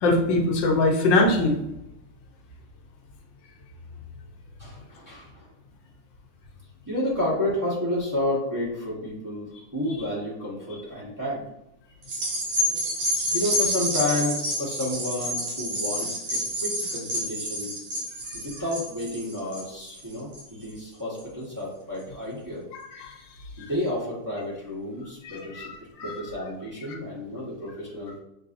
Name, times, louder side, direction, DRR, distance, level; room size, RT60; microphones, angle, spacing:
voice 1, 0.0-1.6 22.9-23.1 25.2-26.1 26.9-27.0, left 2 dB, 65° left, 1 dB, 1.3 m, -23 dB
voice 2, 4.6-5.5 6.9-11.4 13.3-17.7 18.3-22.6 23.6-25.6 26.0-28.1, left 1 dB, 15° right, -7 dB, 0.6 m, -30 dB
sound 1, 12.0-20.7 21.2-21.3, equal, 70° right, 1.9 m, -29 dB
6.4 x 2.7 x 2.5 m, 0.86 s
omnidirectional pair, 2.4 m